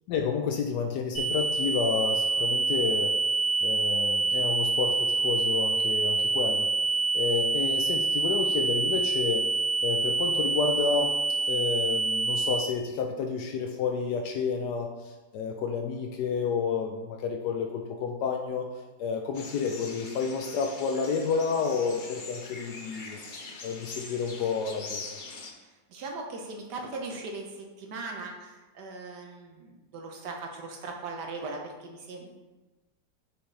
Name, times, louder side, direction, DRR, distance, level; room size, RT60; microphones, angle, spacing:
voice 1, 0.1-3.2 3.6-6.7 7.1-9.5 9.8-11.2 11.5-18.7 19.0-23.2 23.6-25.2, left 5 dB, 75° left, 3 dB, 1.1 m, -30 dB
sound 1, 1.1-12.6, right 3 dB, 30° left, 2.4 m, -26 dB
sound 2, 19.3-25.5, left 3 dB, 60° left, 0.5 m, -43 dB
voice 2, 25.5-32.3, right 3 dB, 70° right, 2 dB, 1.3 m, -39 dB
6.2 x 6.2 x 3.2 m, 1.2 s
omnidirectional pair, 1.9 m